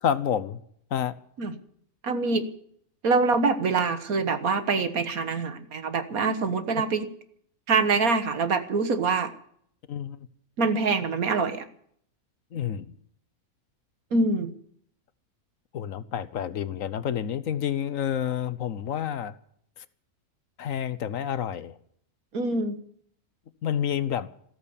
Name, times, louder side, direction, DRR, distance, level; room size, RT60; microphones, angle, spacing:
voice 1, 0.0-0.6 0.9-1.1 9.9-10.3 12.5-12.9 15.7-19.3 20.6-21.8 23.6-24.3, left 9 dB, 65° left, 1.2 m, -29 dB
voice 2, 2.0-2.5 3.0-7.1 7.7-9.3 10.6-11.6 14.1-14.5 22.3-22.8, right 4 dB, 75° right, 1.8 m, -25 dB
14.5 x 14.0 x 7.1 m
omnidirectional pair, 1.5 m